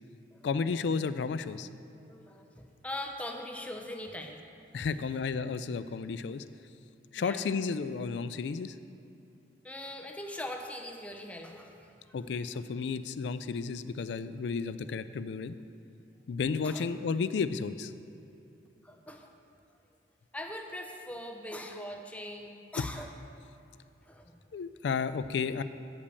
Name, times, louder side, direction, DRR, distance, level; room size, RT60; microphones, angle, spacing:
voice 1, 0.4-1.7 4.7-6.4 7.1-8.7 12.1-15.6 16.3-17.9 22.8-22.9 24.5-25.6, left 5 dB, 70° left, 13 dB, 0.3 m, -32 dB
voice 2, 2.1-4.4 7.2-7.5 9.6-12.2 12.5-12.6 16.6-16.9 18.8-19.3 20.3-23.1 24.0-24.3, left 1 dB, 5° left, 2 dB, 0.6 m, -41 dB
8.3 x 5.2 x 7.0 m, 2.7 s
head